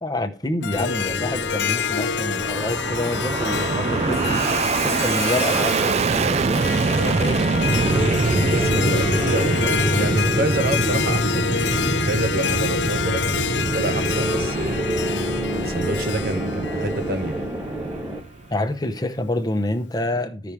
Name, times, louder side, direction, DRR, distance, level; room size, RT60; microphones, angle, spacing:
voice 1, 0.0-7.5 18.5-20.5, left 2 dB, 20° left, 0.8 m, -28 dB
Harp, 0.6-17.9, left 7 dB, 75° left, 0.6 m, -28 dB
sound 1, 0.7-18.2, equal, 15° right, 1.0 m, -28 dB
Fixed-wing aircraft airplane, 1.9-18.6, right 4 dB, 35° right, 0.4 m, -25 dB
voice 2, 7.0-7.4 8.5-14.8 15.5-17.3, right 2 dB, 55° right, 0.8 m, -28 dB
14.5 x 6.0 x 3.4 m
head